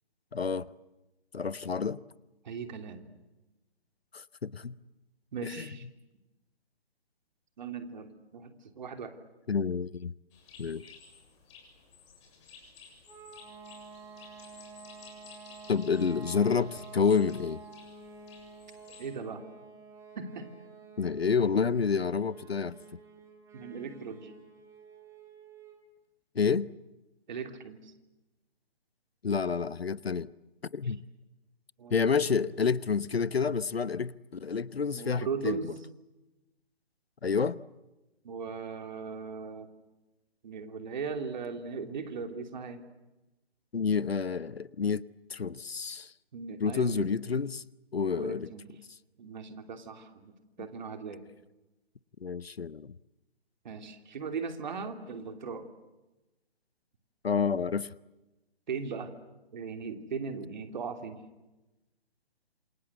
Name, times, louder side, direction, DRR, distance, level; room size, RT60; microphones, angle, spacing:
voice 1, 0.3-0.7 1.3-2.0 4.1-4.8 5.4-5.7 9.5-10.1 10.6-10.9 15.7-17.6 21.0-22.8 26.3-26.7 29.2-30.3 30.7-31.0 31.9-35.6 37.2-37.6 43.7-46.1 46.6-47.6 47.9-48.5 52.2-52.9 57.2-57.9, left 5 dB, 75° left, 1.0 m, -29 dB
voice 2, 2.4-3.0 5.3-5.9 7.6-9.1 19.0-19.4 20.1-20.5 23.5-24.4 27.3-27.9 30.8-31.0 31.8-32.1 34.9-35.8 38.2-39.7 40.4-42.8 46.3-47.1 48.2-48.6 49.2-50.3 50.6-51.2 53.6-55.7 58.7-59.1 59.5-61.2, right 5 dB, 45° right, 3.1 m, -38 dB
sound 1, 10.3-19.1, left 5 dB, 30° left, 7.1 m, -55 dB
sound 2, 13.1-25.9, right 4 dB, 10° right, 3.1 m, -50 dB
27.5 x 26.5 x 8.1 m
figure-of-eight pair, 140°, 31 cm